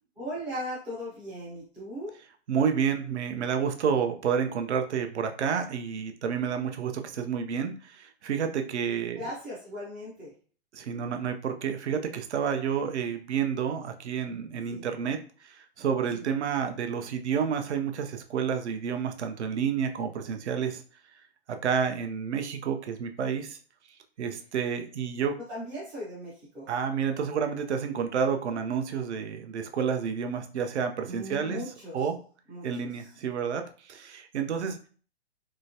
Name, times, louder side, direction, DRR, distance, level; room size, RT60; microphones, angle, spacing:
voice 1, 0.2-2.1 9.2-10.3 14.7-14.9 16.1-16.3 25.4-26.7 31.0-32.1 32.5-32.7 33.0-33.1, equal, 5° right, -7 dB, 0.3 m, -38 dB
voice 2, 2.5-9.2 10.7-15.2 15.4-20.8 21.6-23.6 24.2-25.3 26.7-31.6 31.9-32.2 32.6-34.8, right 7 dB, 75° right, 6 dB, 0.6 m, -29 dB
3.1 x 2.9 x 2.7 m, 0.41 s
hypercardioid pair, 140°, 34 cm